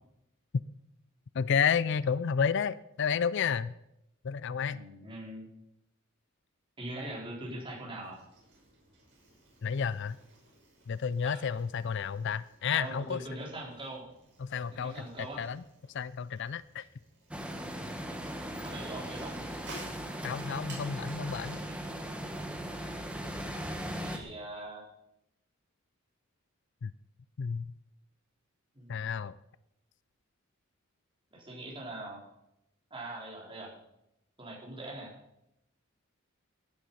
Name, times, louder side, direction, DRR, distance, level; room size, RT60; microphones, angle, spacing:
voice 1, 1.3-3.7 4.2-4.8 9.6-10.2 10.9-13.2 14.4-15.6 15.9-16.8 20.2-21.6 26.8-26.9 27.4-27.7 28.9-29.4, left 6 dB, 55° left, 17 dB, 0.4 m, -31 dB
voice 2, 4.7-5.5 6.8-8.2 11.2-11.4 12.7-14.1 14.7-15.5 18.6-19.5 23.8-24.8 28.7-29.2 31.3-32.2 32.9-33.7 34.4-35.2, right 1 dB, 25° right, -3 dB, 4.1 m, -42 dB
Bicycle, 8.0-23.5, right 2 dB, 55° right, 6.5 m, -56 dB
sound 1, 17.3-24.2, equal, 5° right, 1.5 m, -38 dB
16.0 x 10.5 x 5.5 m, 0.84 s
head